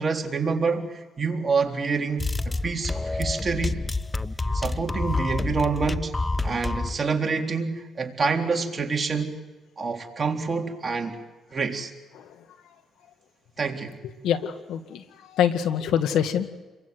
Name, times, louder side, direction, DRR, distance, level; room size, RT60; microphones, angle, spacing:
voice 1, 0.0-3.8 4.5-6.1 6.4-9.4 9.8-11.2 11.5-11.9 13.6-14.0, right 4 dB, 35° right, 2 dB, 3.6 m, -27 dB
sound 1, 2.2-7.0, left 3 dB, 15° left, 0.8 m, -28 dB
voice 2, 14.2-16.5, left 9 dB, 85° left, 9 dB, 1.9 m, -25 dB
29.5 x 23.5 x 7.9 m, 1.2 s
cardioid pair, 90°, 0 cm